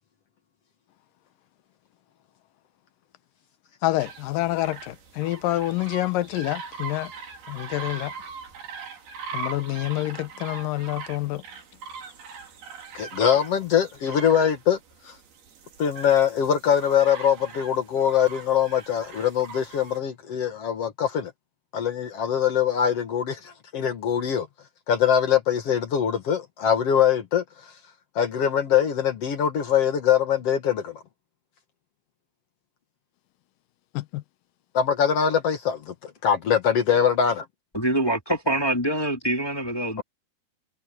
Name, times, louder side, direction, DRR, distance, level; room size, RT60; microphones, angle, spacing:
voice 1, 3.8-7.1 7.5-8.1 9.3-11.4 34.0-34.2, left 16 dB, 75° left, 2.3 m, -27 dB
sound 1, 4.0-20.0, right 5 dB, 85° right, 5.4 m, -41 dB
voice 2, 12.9-14.8 15.1-15.2 15.8-21.3 21.7-24.5 24.9-27.4 28.2-30.9 34.7-37.5, left 8 dB, 55° left, 1.9 m, -23 dB
voice 3, 37.7-40.0, right 1 dB, 15° left, 0.9 m, -25 dB
omnidirectional pair, 4.3 m